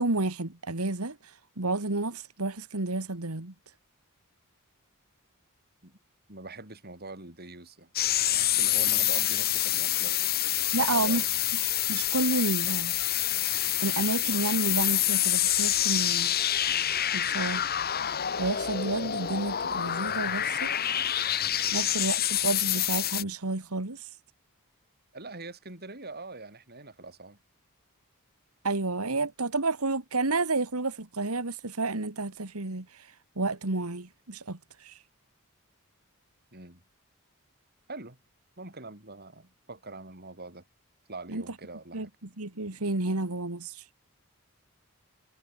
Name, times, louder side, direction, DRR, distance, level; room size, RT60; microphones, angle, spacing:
voice 1, 0.0-3.5 10.7-11.2 11.9-13.0 13.8-16.4 17.1-17.7 18.4-20.7 21.7-24.2 28.6-35.0 41.3-41.4 41.9-42.1 42.4-43.9, right 2 dB, 90° right, 2.1 m, -30 dB
voice 2, 6.3-7.9 8.3-10.2 10.8-11.3 21.7-21.9 25.1-27.4 36.5-36.8 37.9-38.2 38.6-40.6 41.1-42.1, right 3 dB, 45° right, 7.6 m, -43 dB
sound 1, 8.0-23.2, left 12 dB, 45° left, 1.4 m, -27 dB
head